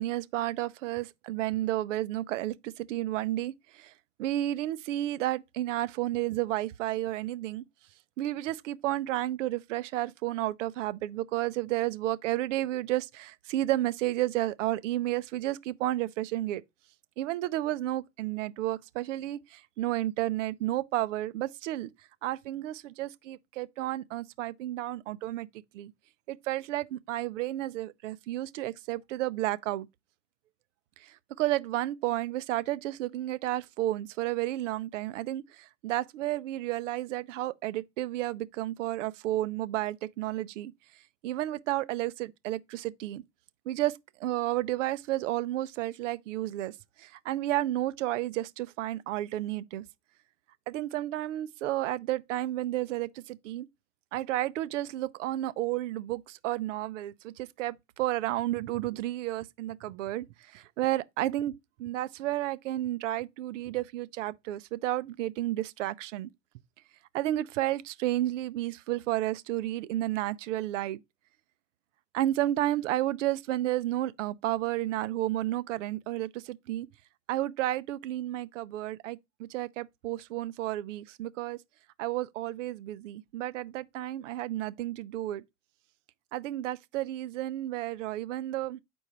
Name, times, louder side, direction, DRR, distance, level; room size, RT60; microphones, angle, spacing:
voice 1, 0.0-3.9 4.2-7.6 8.2-16.6 17.2-21.9 22.2-25.5 25.7-25.9 26.3-29.9 31.0-40.7 41.2-43.2 43.7-49.8 50.7-53.7 54.1-61.5 61.8-66.3 67.1-71.0 72.1-76.9 77.3-81.6 82.0-85.4 86.3-88.8, right 14 dB, 75° right, 0.7 m, -32 dB
7.8 x 4.5 x 3.1 m
supercardioid pair, 135°, 38 cm